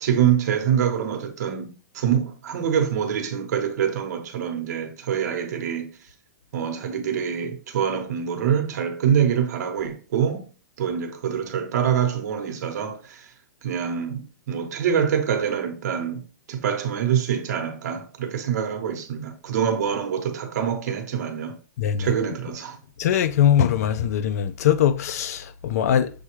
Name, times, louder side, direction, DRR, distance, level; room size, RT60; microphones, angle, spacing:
voice 1, 0.0-6.0 6.5-10.5 10.8-13.3 13.6-21.6 22.0-22.8, right 8 dB, 55° right, 0.9 m, -25 dB
voice 2, 23.0-26.1, left 9 dB, 50° left, 0.3 m, -21 dB
6.6 x 2.2 x 3.1 m
hypercardioid pair, 160°, 10 cm